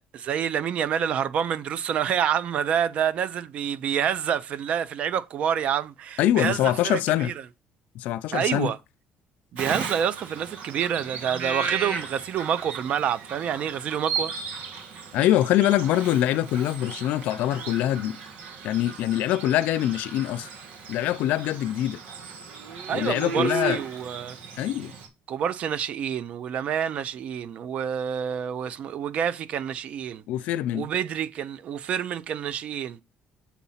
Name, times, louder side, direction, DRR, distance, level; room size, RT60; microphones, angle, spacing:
voice 1, 0.0-7.3 8.3-8.8 9.5-14.3 22.9-24.4 25.3-30.2 30.7-33.0, right 8 dB, 55° right, 0.6 m, -28 dB
voice 2, 6.2-7.3 7.9-8.7 15.1-18.2 18.6-20.5 20.9-22.0 22.9-23.8 24.6-24.9 30.3-30.9, left 13 dB, 80° left, 0.6 m, -24 dB
Bird vocalization bird call bird song, 9.6-25.1, right 5 dB, 70° right, 1.9 m, -35 dB
7.1 x 4.2 x 5.6 m
cardioid pair, 130°, 3 cm